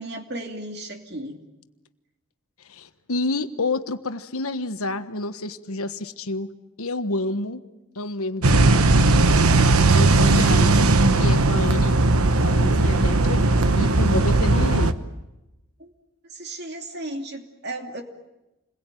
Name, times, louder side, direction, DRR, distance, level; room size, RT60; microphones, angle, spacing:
voice 1, 0.0-1.4 15.8-15.9 16.2-18.0, right 1 dB, 50° right, 4 dB, 2.8 m, -35 dB
voice 2, 2.7-6.5 6.8-7.6 7.9-8.9 9.9-10.7 11.2-12.0 12.4-14.9, left 2 dB, 80° left, 10 dB, 1.4 m, -29 dB
sound 1, 8.4-14.9, right 2 dB, 85° right, 1.2 m, -17 dB
28.5 x 21.5 x 9.2 m, 1.0 s
head